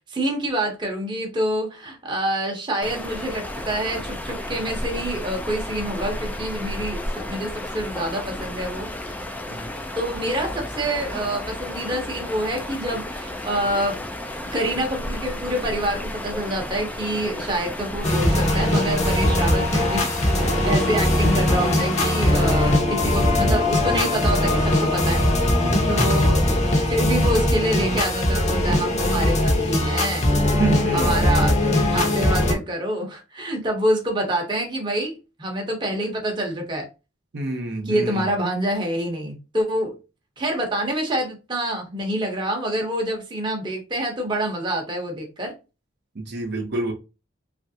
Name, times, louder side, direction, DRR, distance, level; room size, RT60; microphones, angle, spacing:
voice 1, 0.1-8.9 9.9-14.0 14.5-25.2 25.9-26.5 26.9-30.3 30.9-36.9 37.9-40.0 40.4-45.6, right 1 dB, 25° right, 0.8 m, -27 dB
sound 1, 2.8-22.8, left 1 dB, 10° left, 0.3 m, -33 dB
sound 2, 18.0-32.5, left 1 dB, 35° left, 0.7 m, -20 dB
voice 2, 25.6-26.1 30.6-31.3 37.3-38.3 46.1-46.9, right 2 dB, 55° right, 0.7 m, -28 dB
3.1 x 2.5 x 2.7 m
head